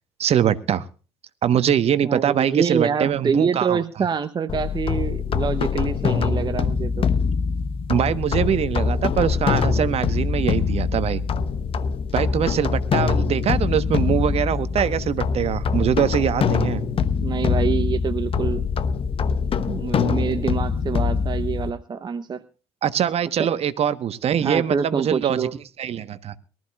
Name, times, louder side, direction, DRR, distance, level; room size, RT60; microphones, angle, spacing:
voice 1, 0.2-0.9 1.4-3.8 7.9-11.2 12.1-16.8 22.8-25.5 25.8-26.3, right 9 dB, 45° right, 13 dB, 1.2 m, -23 dB
voice 2, 2.0-7.1 17.2-18.6 19.5-22.4 23.4-23.5 24.4-25.5, right 6 dB, 30° right, 9 dB, 0.9 m, -25 dB
sound 1, 4.5-21.7, left 6 dB, 40° left, 1.1 m, -23 dB
23.0 x 14.0 x 2.4 m, 0.36 s
hypercardioid pair, 60°, 14 cm